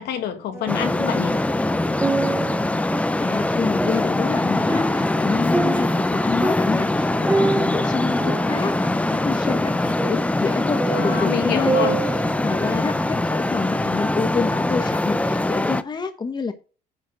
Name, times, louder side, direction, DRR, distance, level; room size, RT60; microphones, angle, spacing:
voice 1, 0.0-1.4 10.9-12.0, left 10 dB, 75° left, 2.0 m, -27 dB
sound 1, 0.5-1.4 1.8-12.9 13.4-13.5, right 3 dB, 10° right, 1.9 m, -28 dB
Traffic noise roadway noise, 0.7-15.8, left 2 dB, 10° left, 0.6 m, -23 dB
voice 2, 3.2-11.9 12.4-16.5, left 4 dB, 25° left, 1.1 m, -27 dB
9.9 x 4.3 x 6.1 m
cardioid pair, 110°, 17 cm